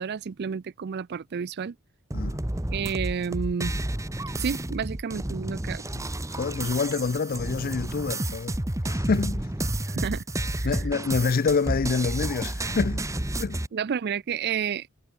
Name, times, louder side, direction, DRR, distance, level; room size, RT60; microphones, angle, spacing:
voice 1, 0.0-1.8 2.7-3.8 4.4-5.9 9.9-10.2 10.6-10.7 13.7-14.9, right 6 dB, 50° right, 0.4 m, -30 dB
sound 1, 2.1-13.7, right 1 dB, 15° right, 1.1 m, -30 dB
voice 2, 6.4-8.6 8.9-9.4 10.6-13.1 13.4-13.6, left 4 dB, 45° left, 0.4 m, -27 dB
head